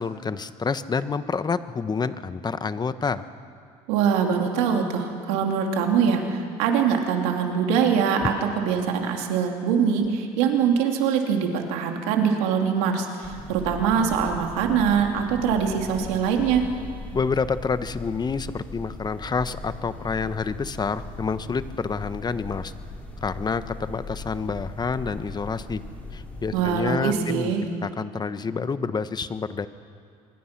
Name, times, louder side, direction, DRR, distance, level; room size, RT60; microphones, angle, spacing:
voice 1, 0.0-3.2 17.1-22.7 23.2-25.8 26.1-27.5 27.8-29.7, left 5 dB, 30° left, 12 dB, 1.1 m, -28 dB
voice 2, 3.9-16.7 26.5-27.6, right 7 dB, 90° right, 3 dB, 2.8 m, -23 dB
sound 1, 13.2-26.7, left 2 dB, 10° left, 5.9 m, -39 dB
26.5 x 21.5 x 6.0 m, 2.4 s
supercardioid pair, 85°, 15 cm